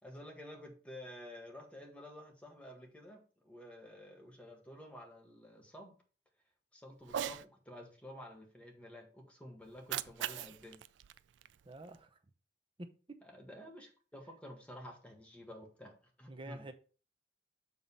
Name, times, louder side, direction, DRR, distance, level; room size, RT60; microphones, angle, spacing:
voice 1, 0.0-6.0 6.7-10.8 13.2-16.7, left 1 dB, 5° left, 1.6 m, -51 dB
Cat, 7.0-7.5 9.6-12.0, right 10 dB, 80° right, 0.3 m, -41 dB
voice 2, 11.7-12.2 12.8-13.2 16.3-16.7, right 2 dB, 30° right, 0.8 m, -48 dB
7.1 x 3.9 x 5.4 m
head